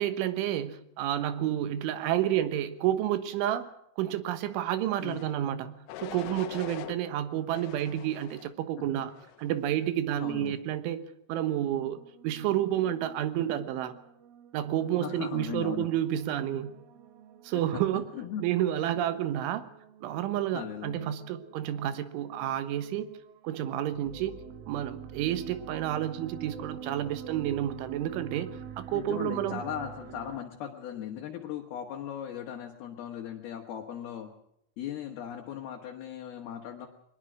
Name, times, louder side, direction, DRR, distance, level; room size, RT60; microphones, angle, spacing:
voice 1, 0.0-3.7 4.0-9.1 9.4-11.0 11.3-14.0 14.5-16.8 17.4-18.1 18.4-19.7 20.0-23.1 23.4-24.4 24.7-29.6, right 11 dB, 85° right, 11 dB, 3.7 m, -30 dB
sound 1, 4.9-5.3 5.9-7.0 7.5-8.5 9.1-9.5, left 12 dB, 80° left, 3.5 m, -43 dB
voice 2, 10.2-10.6 15.0-15.9 18.1-18.4 20.5-21.1 28.9-34.3 34.8-36.9, left 9 dB, 65° left, 1 dB, 3.1 m, -38 dB
sound 2, 11.7-30.4, right 8 dB, 65° right, 2.5 m, -47 dB
22.5 x 20.5 x 6.3 m, 0.76 s
omnidirectional pair, 5.4 m